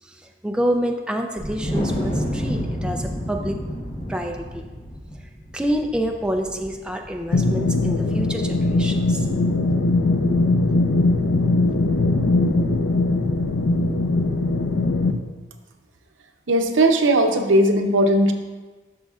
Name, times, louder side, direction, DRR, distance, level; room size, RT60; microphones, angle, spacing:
voice 1, 0.0-3.6 4.1-4.7 5.5-9.3, equal, 5° right, 2 dB, 0.4 m, -27 dB
Wind, 1.4-7.9, equal, 30° left, 1.0 m, -29 dB
sound 1, 7.3-15.1, left 2 dB, 80° left, 0.5 m, -20 dB
voice 2, 16.5-18.3, right 1 dB, 85° right, 4 dB, 0.7 m, -17 dB
11.0 x 6.4 x 2.4 m, 1.3 s
head